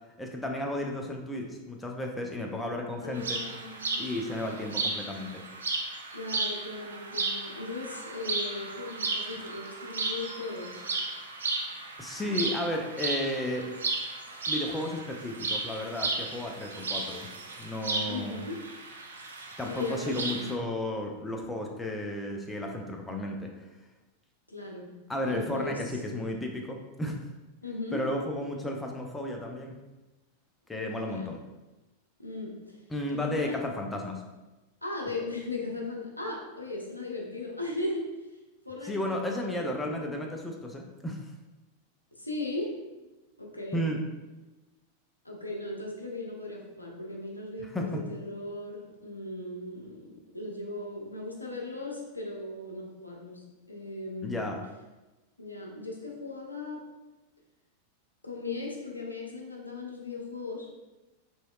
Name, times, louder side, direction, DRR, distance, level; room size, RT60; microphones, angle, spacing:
voice 1, 0.2-3.4 4.0-5.4 12.0-13.7 14.5-17.3 17.6-18.5 19.6-23.7 25.1-27.2 27.9-29.8 30.7-31.4 32.9-34.2 38.8-41.3 43.7-44.0 47.7-48.0 54.2-54.6, left 1 dB, 10° left, 1 dB, 0.4 m, -33 dB
voice 2, 3.0-4.4 6.1-10.8 18.0-18.6 19.6-20.2 24.5-24.9 25.3-26.0 27.6-28.0 30.7-31.3 32.2-32.8 33.1-33.6 34.8-38.1 38.6-40.1 42.1-42.8 43.4-43.8 45.2-54.5 55.4-56.9 58.2-60.7, left 2 dB, 85° left, -1 dB, 0.5 m, -38 dB
sound 1, 3.2-20.5, right 3 dB, 70° right, 0.4 m, -34 dB
3.0 x 2.7 x 2.3 m, 1.1 s
figure-of-eight pair, 90°, 0 cm